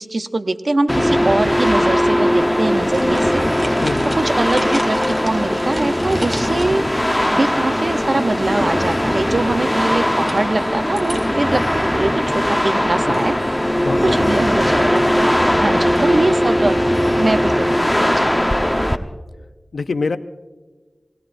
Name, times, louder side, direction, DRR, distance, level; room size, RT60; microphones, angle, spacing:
voice 1, 0.0-3.4 4.1-6.8 7.3-13.4 14.0-16.8 17.2-18.2, right 2 dB, 60° right, 9 dB, 0.8 m, -22 dB
sound 1, 0.9-19.0, equal, 10° left, 1.0 m, -19 dB
sound 2, 2.8-8.0 8.3-8.7 10.2-11.4, right 1 dB, 35° right, 4.0 m, -33 dB
voice 2, 3.8-4.1 13.0-13.2 13.8-14.4 19.7-20.2, left 4 dB, 90° left, 10 dB, 0.6 m, -25 dB
29.5 x 19.0 x 2.6 m, 1.3 s
cardioid pair, 40°, 0 cm